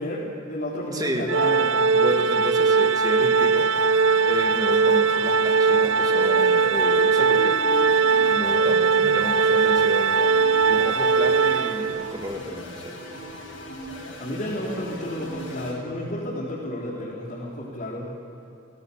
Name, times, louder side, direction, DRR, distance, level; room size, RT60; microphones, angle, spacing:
voice 1, 0.0-2.1 14.2-18.1, left 1 dB, 45° left, -7 dB, 4.0 m, -32 dB
voice 2, 0.9-1.3 2.0-3.7 4.2-7.6 8.3-10.3 10.7-13.0, equal, 20° right, 3 dB, 1.8 m, -31 dB
Organ, 1.3-12.2, right 5 dB, 80° right, 0.5 m, -20 dB
sound 1, 2.1-15.7, left 1 dB, 85° left, 7.4 m, -38 dB
27.5 x 18.5 x 7.2 m, 2.6 s
head